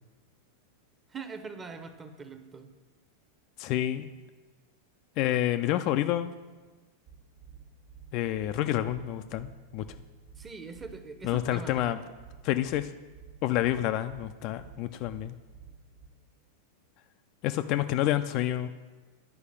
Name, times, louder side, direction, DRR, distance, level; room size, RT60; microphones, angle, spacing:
voice 1, 1.1-2.7 10.4-11.9, right 4 dB, 20° right, 8 dB, 0.8 m, -42 dB
voice 2, 3.6-4.1 5.2-6.3 8.1-9.9 11.2-12.0 12.4-12.9 13.4-15.3 17.4-18.7, left 13 dB, 40° left, 9 dB, 0.3 m, -28 dB
sound 1, 7.1-16.1, right 7 dB, 50° right, 1.3 m, -51 dB
9.9 x 4.9 x 6.5 m, 1.4 s
figure-of-eight pair, 90°, 0 cm